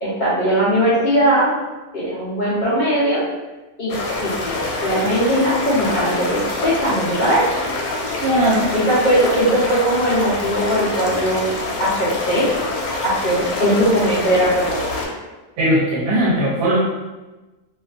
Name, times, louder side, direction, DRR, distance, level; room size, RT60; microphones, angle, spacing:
voice 1, 0.0-1.6 1.9-3.2 3.8-3.9 4.2-7.5 8.7-11.5 11.8-12.5 13.0-15.1, equal, 60° left, -9 dB, 0.5 m, -19 dB
sound 1, 3.9-15.1, left 2 dB, 80° left, 1.0 m, -26 dB
voice 2, 8.2-8.7 15.6-16.8, right 1 dB, 90° right, -6 dB, 1.1 m, -18 dB
2.5 x 2.3 x 2.3 m, 1.1 s
omnidirectional pair, 1.5 m